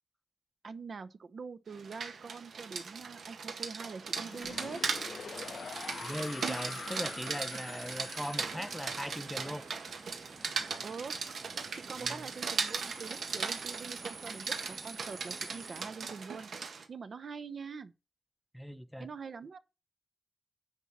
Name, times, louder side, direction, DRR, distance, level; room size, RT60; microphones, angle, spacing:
voice 1, 0.6-4.8 7.7-7.8 10.8-11.1 11.7-16.5 16.9-17.9 19.0-19.6, right 5 dB, 60° right, 0.8 m, -44 dB
Rain, 1.7-16.8, right 5 dB, 85° right, 1.6 m, -38 dB
sound 1, 4.1-11.0, left 5 dB, 65° left, 0.6 m, -46 dB
sound 2, 4.6-15.9, right 3 dB, 35° right, 1.1 m, -51 dB
voice 2, 6.0-9.6 12.0-12.3 18.5-19.1, equal, 5° left, 0.7 m, -39 dB
9.8 x 4.2 x 7.4 m
wide cardioid pair, 130°, 0 cm